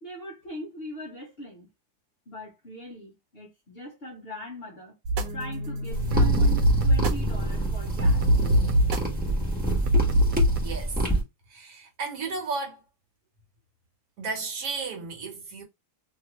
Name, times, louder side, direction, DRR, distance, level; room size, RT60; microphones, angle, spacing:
voice 1, 0.0-1.7 2.3-5.0 5.3-8.3, left 1 dB, 50° left, 0.7 m, -41 dB
sound 1, 5.1-10.6, equal, 85° right, 1.2 m, -24 dB
sound 2, 5.9-11.2, right 1 dB, 5° right, 0.8 m, -28 dB
voice 2, 10.6-11.0 11.5-12.8 14.2-15.6, right 4 dB, 65° right, 1.3 m, -34 dB
2.9 x 2.4 x 2.9 m
omnidirectional pair, 1.8 m